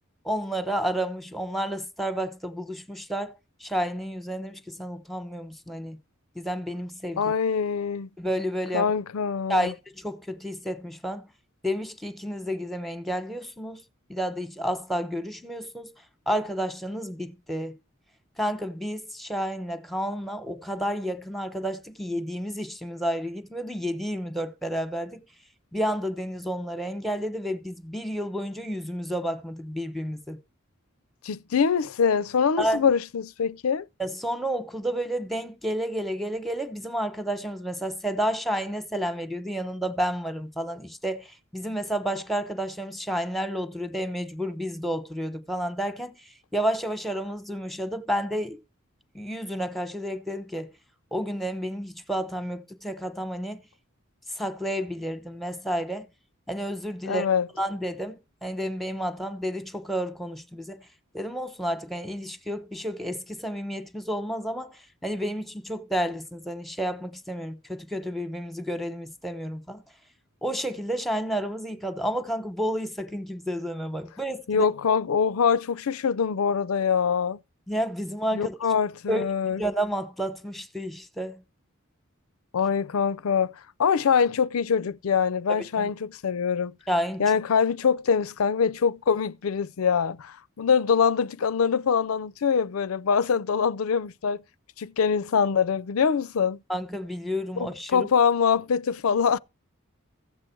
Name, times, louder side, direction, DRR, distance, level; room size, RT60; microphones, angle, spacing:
voice 1, 0.2-6.0 6.3-7.3 8.2-8.9 9.5-11.3 11.6-13.8 14.1-15.9 16.3-17.7 18.4-25.2 25.7-30.4 32.6-32.9 34.0-46.2 46.5-48.6 49.1-50.7 51.1-53.6 54.3-56.1 56.5-57.3 57.6-60.8 61.1-69.8 70.4-74.7 77.7-78.5 79.1-81.4 85.5-85.9 86.9-87.2 96.7-98.1, equal, ahead, 0.9 m, -31 dB
voice 2, 7.2-8.1 8.7-9.7 31.2-33.8 57.1-57.5 74.5-77.4 78.3-79.6 82.5-83.5 83.8-86.7 87.2-94.4 94.8-96.6 97.6-99.4, left 6 dB, 85° left, 0.5 m, -24 dB
14.5 x 7.7 x 4.5 m
head